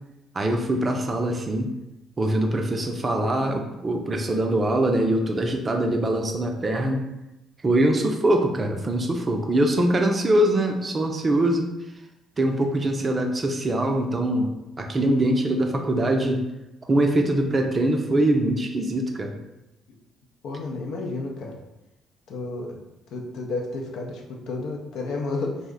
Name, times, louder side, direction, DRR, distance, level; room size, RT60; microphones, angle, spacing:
voice 1, 0.3-1.7 2.2-7.0 7.6-11.7 12.4-16.4 16.9-19.4, right 1 dB, 35° right, 4 dB, 0.4 m, -23 dB
voice 2, 20.4-21.6 22.3-22.8 23.1-25.6, left 3 dB, 60° left, 1 dB, 0.4 m, -31 dB
2.5 x 2.1 x 3.6 m, 0.94 s
hypercardioid pair, 45°, 0 cm